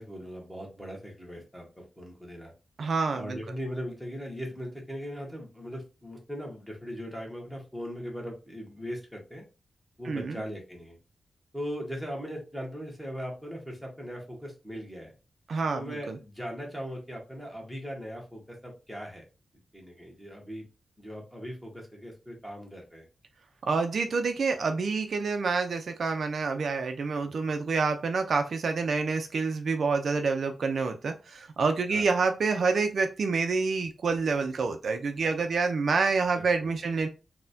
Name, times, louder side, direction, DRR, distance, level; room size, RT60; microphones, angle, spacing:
voice 1, 0.0-2.5 3.1-9.4 10.0-11.0 11.5-15.1 15.7-19.2 19.7-20.7 21.0-23.1 31.9-32.2 36.3-37.0, equal, 5° left, -1 dB, 1.0 m, -39 dB
voice 2, 2.8-3.4 10.1-10.4 15.5-16.2 23.7-37.1, right 4 dB, 65° right, 6 dB, 0.4 m, -27 dB
4.0 x 2.1 x 2.6 m, 0.30 s
wide cardioid pair, 145°, 0 cm